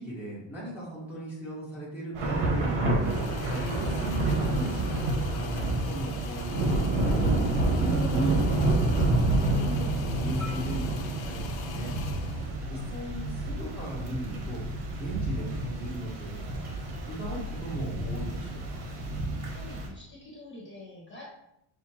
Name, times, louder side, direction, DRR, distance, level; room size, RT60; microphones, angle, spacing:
voice 1, 0.0-3.2 3.5-9.9 10.2-11.9 12.3-14.6 15.0-18.9, right 1 dB, 5° right, -9 dB, 1.3 m, -38 dB
Thunder / Rain, 2.1-19.9, right 2 dB, 75° right, 1.3 m, -28 dB
sound 1, 3.0-12.6, left 7 dB, 65° left, 0.7 m, -44 dB
Marimba xylophone, 10.4-14.6, right 3 dB, 50° right, 1.7 m, -49 dB
voice 2, 19.4-21.2, left 2 dB, 25° left, -5 dB, 1.3 m, -46 dB
6.5 x 2.4 x 2.9 m, 0.79 s
cardioid pair, 150°, 49 cm